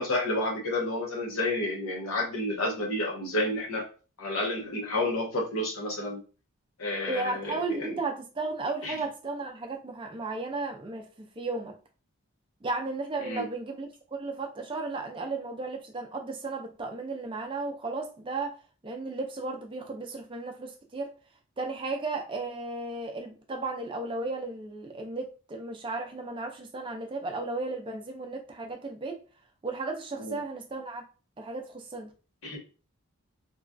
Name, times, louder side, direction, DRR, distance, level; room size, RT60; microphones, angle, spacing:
voice 1, 0.0-3.9 4.2-6.2 6.8-8.0 8.8-9.0 13.2-13.5 30.2-30.4 32.4-32.6, left 1 dB, 70° left, 0 dB, 0.9 m, -30 dB
voice 2, 7.0-11.7 12.6-18.5 18.8-21.1 21.6-29.2 29.6-31.0 31.4-32.1, right 3 dB, 25° right, 3 dB, 0.4 m, -34 dB
3.0 x 2.3 x 2.5 m, 0.35 s
head